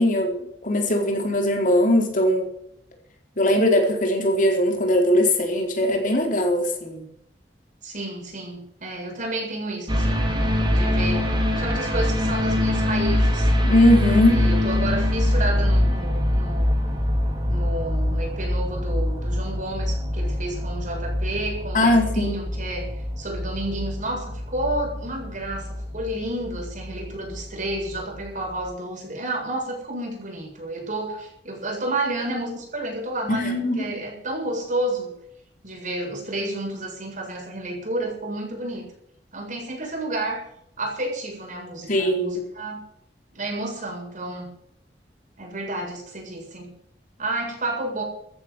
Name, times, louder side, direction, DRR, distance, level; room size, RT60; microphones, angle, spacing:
voice 1, 0.0-2.5 3.4-7.0 13.6-14.5 21.7-22.3 33.3-33.9 41.9-42.4, left 1 dB, 50° left, 2 dB, 4.4 m, -20 dB
voice 2, 7.8-10.3 10.7-13.5 14.3-16.7 17.5-22.9 23.2-35.1 35.6-38.9 39.3-40.4 40.8-42.8 43.3-44.5 45.4-46.7 47.2-48.0, right 1 dB, 50° right, 0 dB, 7.6 m, -31 dB
sound 1, 9.9-28.3 28.6-28.7, left 1 dB, 30° right, 3.7 m, -24 dB
15.0 x 10.5 x 8.2 m, 0.73 s
head